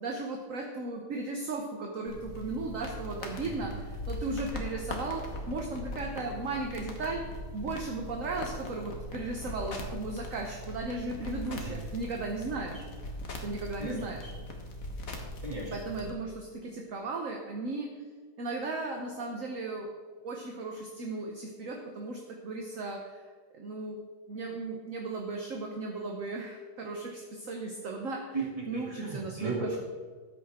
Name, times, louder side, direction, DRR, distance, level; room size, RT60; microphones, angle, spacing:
voice 1, 0.0-7.2 7.5-12.8 13.4-14.3 15.7-17.9 18.4-19.9 20.2-23.2 23.5-24.0 24.3-28.2 28.7-29.5, right 3 dB, 50° right, 1 dB, 1.3 m, -36 dB
sound 1, 2.1-16.1, left 1 dB, 50° left, 1.7 m, -40 dB
voice 2, 13.8-14.2 15.4-15.7 28.3-29.8, right 3 dB, 20° right, -4 dB, 2.5 m, -36 dB
13.5 x 9.2 x 3.6 m, 1.5 s
omnidirectional pair, 2.0 m